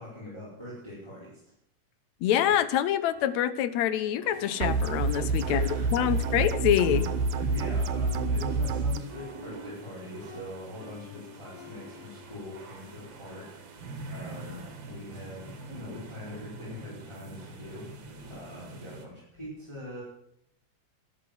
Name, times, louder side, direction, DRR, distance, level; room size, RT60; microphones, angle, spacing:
voice 1, 0.0-1.5 2.5-2.6 5.4-6.4 6.8-13.6 14.0-20.0, left 1 dB, 10° left, 5.1 m, -42 dB
voice 2, 2.2-7.0, left 11 dB, 75° left, 2.1 m, -26 dB
sound 1, 3.1-10.0 10.2-13.8 14.4-14.7, left 2 dB, 25° right, 7.7 m, -51 dB
sound 2, 4.3-19.1, right 3 dB, 55° right, 2.9 m, -46 dB
sound 3, 4.6-9.0, right 3 dB, 85° right, 2.3 m, -28 dB
12.5 x 11.5 x 7.7 m
omnidirectional pair, 3.4 m